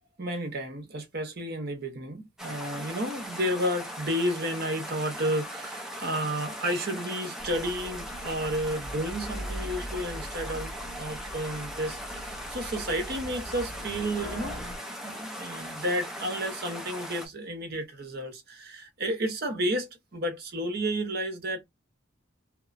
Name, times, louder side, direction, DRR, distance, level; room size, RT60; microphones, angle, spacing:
voice 1, 0.2-21.6, equal, 50° right, 0.8 m, -32 dB
sound 1, 2.4-17.3, equal, ahead, 0.6 m, -39 dB
sound 2, 7.4-14.8, equal, 50° left, 1.4 m, -41 dB
2.9 x 2.2 x 2.5 m
head